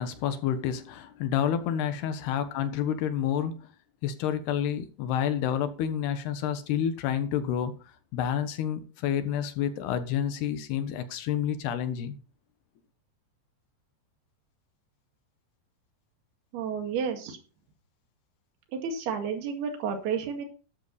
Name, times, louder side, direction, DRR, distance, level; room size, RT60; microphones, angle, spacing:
voice 1, 0.0-3.7 4.0-7.8 8.1-12.2, left 9 dB, 75° left, 3.3 m, -29 dB
voice 2, 16.5-17.4 18.7-20.5, right 6 dB, 70° right, 4.1 m, -31 dB
13.0 x 10.5 x 4.1 m
omnidirectional pair, 4.8 m